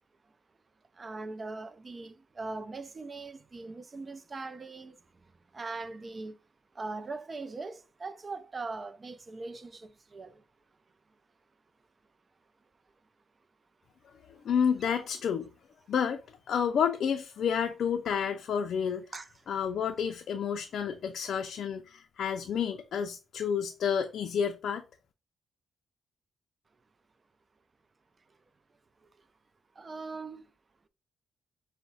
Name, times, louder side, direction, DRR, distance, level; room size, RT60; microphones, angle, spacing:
voice 1, 0.9-5.0 5.5-6.4 6.7-10.4 14.9-15.0 19.1-19.3 29.8-30.4, right 3 dB, 30° right, 0.4 m, -40 dB
voice 2, 14.4-15.5 15.9-16.2 16.5-19.0 19.5-24.8, left 7 dB, 70° left, 0.4 m, -30 dB
5.5 x 2.1 x 3.9 m
cardioid pair, 105°, 0 cm